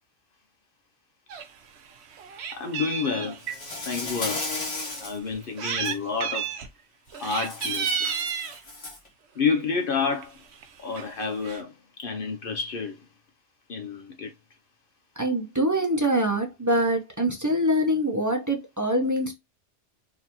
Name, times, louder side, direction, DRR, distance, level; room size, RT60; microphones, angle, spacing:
Meow, 1.3-1.5 1.9-3.6 4.3-4.4 5.3-6.0 6.2-6.7 7.1-8.6 9.6-9.8 10.2-10.3 10.5-10.6 11.0-11.6, right 7 dB, 70° right, 0.9 m, -31 dB
voice 1, 2.5-3.4 3.9-4.7 5.0-6.5 7.2-8.1 9.4-10.4 10.8-13.0 13.7-14.3, left 5 dB, 60° left, 0.7 m, -29 dB
Insect, 3.4-5.2 5.6-5.9 7.2-9.1, left 2 dB, 35° left, 1.3 m, -34 dB
voice 2, 15.2-19.3, equal, 20° right, 0.5 m, -24 dB
3.8 x 2.7 x 2.8 m
omnidirectional pair, 1.2 m